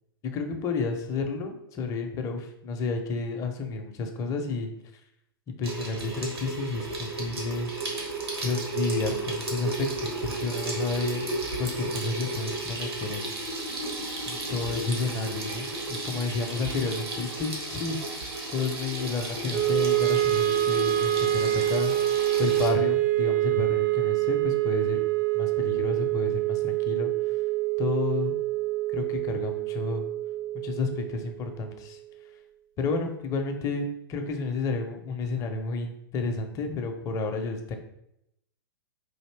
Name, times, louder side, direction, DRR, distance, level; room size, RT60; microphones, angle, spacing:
voice 1, 0.3-4.7 5.6-7.7 8.4-11.3 11.6-13.3 14.3-18.0 18.5-21.9 22.4-25.0 25.3-27.1 27.8-28.3 28.9-30.1 30.6-32.0 32.8-37.8, left 4 dB, 25° left, 5 dB, 0.6 m, -31 dB
Water tap faucet / Sink (filling or washing), 5.6-22.7, right 2 dB, 80° right, 1.2 m, -33 dB
Wind instrument woodwind instrument, 19.5-31.8, right 15 dB, 40° right, 0.3 m, -26 dB
4.0 x 2.6 x 3.3 m, 0.79 s
figure-of-eight pair, 110°, 13 cm